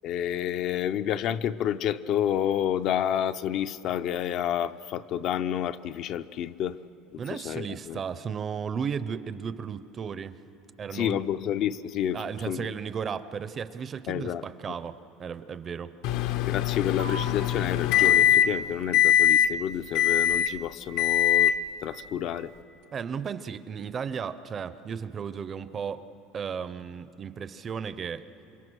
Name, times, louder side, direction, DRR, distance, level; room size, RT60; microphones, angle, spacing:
voice 1, 0.0-6.8 7.1-8.0 10.9-12.7 14.1-14.4 16.4-21.5 21.8-22.5, left 10 dB, 40° left, 12 dB, 0.5 m, -29 dB
voice 2, 7.2-10.4 10.8-11.2 12.1-15.9 22.9-26.0 26.3-28.2, right 6 dB, 25° right, 13 dB, 0.5 m, -34 dB
Microwave oven, 16.0-18.6 18.9-19.5 19.9-20.5 21.0-21.6, left 11 dB, 65° left, 0.8 m, -22 dB
sound 1, 17.0-24.0, right 3 dB, 75° right, 1.0 m, -48 dB
28.0 x 24.5 x 6.2 m, 2.9 s
cardioid pair, 170°, 0 cm